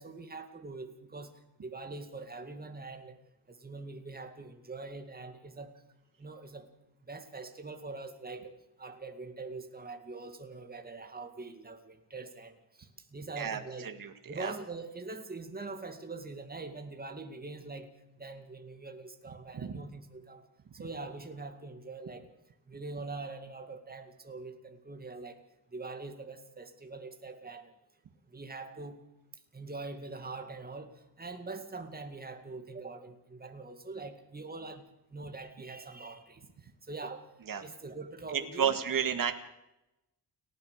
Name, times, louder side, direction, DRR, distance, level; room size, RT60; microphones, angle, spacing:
voice 1, 0.0-3.2 3.5-5.8 6.2-6.7 7.1-13.9 14.3-20.5 20.7-22.3 22.7-25.4 25.7-27.7 28.3-29.0 29.5-37.3 37.6-38.8, right 3 dB, 20° right, 6 dB, 2.3 m, -43 dB
voice 2, 13.4-14.1 14.4-14.5 19.5-19.8 37.5-37.6 38.3-39.3, right 7 dB, 55° right, 6 dB, 2.1 m, -31 dB
30.0 x 13.5 x 6.7 m, 0.89 s
wide cardioid pair, 165°, 41 cm